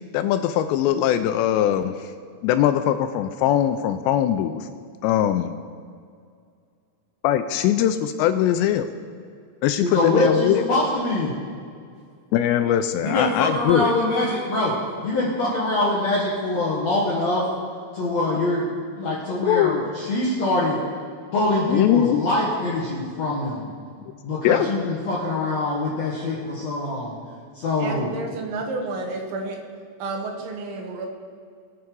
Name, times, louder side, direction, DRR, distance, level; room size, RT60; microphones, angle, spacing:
voice 1, 0.1-2.1 2.4-4.7 5.0-5.5 7.2-8.9 9.6-10.6 12.3-13.9 19.5-19.8 21.7-22.2 24.4-24.7, left 11 dB, 85° left, 10 dB, 2.6 m, -21 dB
voice 2, 9.8-11.3 13.0-14.8 15.0-17.5 17.9-18.7 19.0-20.8 21.3-23.7 24.2-27.1 27.5-28.1, left 2 dB, 65° left, -4 dB, 1.8 m, -24 dB
voice 3, 27.8-29.6 30.0-31.1, right 3 dB, 80° right, 2 dB, 3.7 m, -30 dB
22.0 x 7.7 x 4.6 m, 2.2 s
omnidirectional pair, 5.2 m